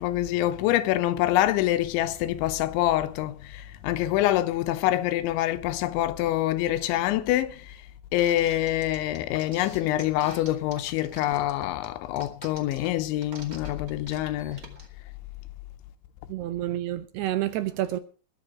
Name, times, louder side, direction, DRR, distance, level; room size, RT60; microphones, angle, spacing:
voice 1, 0.0-7.8 8.1-14.8, left 14 dB, 90° left, 3.2 m, -26 dB
sound 1, 8.2-14.9, right 3 dB, 35° right, 1.6 m, -45 dB
voice 2, 16.3-18.0, right 14 dB, 75° right, 2.5 m, -29 dB
21.0 x 7.6 x 4.8 m
omnidirectional pair, 5.3 m